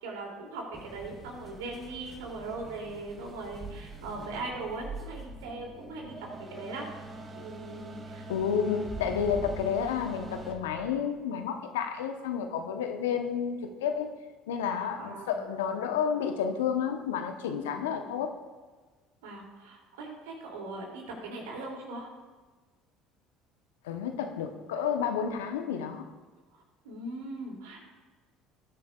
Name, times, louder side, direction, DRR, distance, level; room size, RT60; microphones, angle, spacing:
voice 1, 0.0-6.2 6.5-6.8 7.3-8.2 14.9-15.5 17.7-18.2 19.2-22.1 26.8-27.8, right 2 dB, 75° right, 0 dB, 2.8 m, -40 dB
sound 1, 0.7-10.5, right 2 dB, 35° right, 2.5 m, -45 dB
sound 2, 3.6-4.1 4.7-5.5 8.4-10.9, right 3 dB, 15° right, 2.3 m, -43 dB
voice 2, 8.3-14.1 14.5-18.3 23.8-26.0, left 7 dB, 80° left, 6 dB, 1.0 m, -30 dB
19.0 x 10.5 x 2.4 m, 1.4 s
hypercardioid pair, 65°, 0 cm